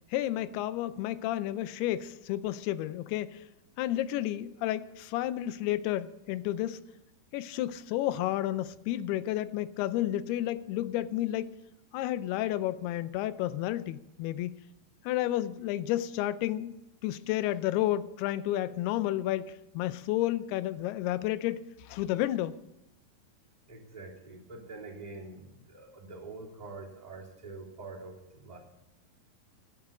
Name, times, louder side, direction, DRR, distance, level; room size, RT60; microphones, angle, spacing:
voice 1, 0.1-3.4 3.8-6.8 7.3-11.5 11.9-14.6 15.0-16.7 17.0-22.6, left 14 dB, 80° left, 2.5 m, -31 dB
voice 2, 23.7-28.6, right 3 dB, 10° right, 2.6 m, -45 dB
12.5 x 9.4 x 8.5 m
omnidirectional pair, 4.7 m